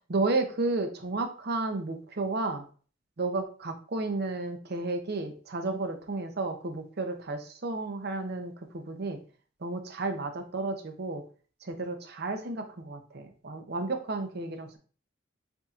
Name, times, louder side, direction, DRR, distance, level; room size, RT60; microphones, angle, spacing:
voice 1, 0.1-2.6 3.2-9.2 9.6-11.2 11.6-14.8, right 3 dB, 55° right, 6 dB, 0.7 m, -32 dB
6.9 x 2.7 x 2.4 m, 0.40 s
head